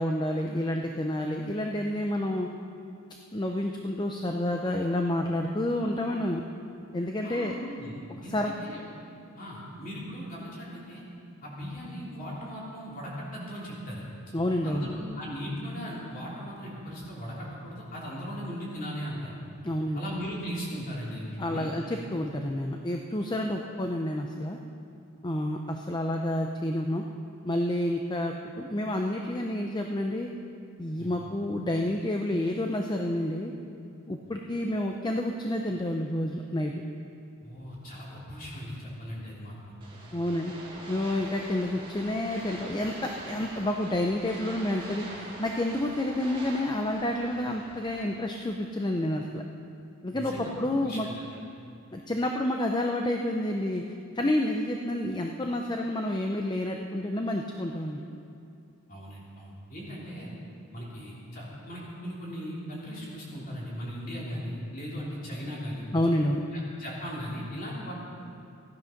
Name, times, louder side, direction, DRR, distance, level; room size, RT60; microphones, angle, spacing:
voice 1, 0.0-2.5 3.3-6.4 6.9-7.6 8.3-8.5 14.3-14.9 19.6-20.0 21.4-24.6 25.2-27.0 27.4-30.3 30.8-33.5 34.1-36.7 40.1-40.5 40.9-49.4 50.0-51.1 51.9-53.8 54.1-58.0 65.9-66.4, left 1 dB, 20° left, 2 dB, 0.6 m, -29 dB
voice 2, 7.2-8.8 9.3-11.0 11.4-14.0 14.6-19.3 19.9-21.7 31.0-31.1 34.2-34.3 37.4-39.7 50.1-50.5 50.8-51.2 58.9-60.3 60.7-65.9 66.5-67.9, equal, 40° left, -5 dB, 3.3 m, -38 dB
sound 1, 39.8-48.0, right 2 dB, 20° right, 2.0 m, -44 dB
15.5 x 10.5 x 5.9 m, 2.5 s
head